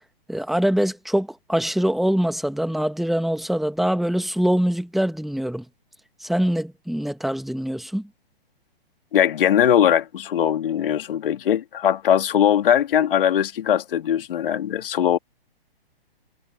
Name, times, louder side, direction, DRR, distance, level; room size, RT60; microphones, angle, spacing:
voice 1, 0.3-5.6 6.2-8.1, equal, ahead, 1.4 m, -23 dB
voice 2, 9.1-15.2, left 9 dB, 65° left, 3.4 m, -20 dB
hypercardioid pair, 130°, 30 cm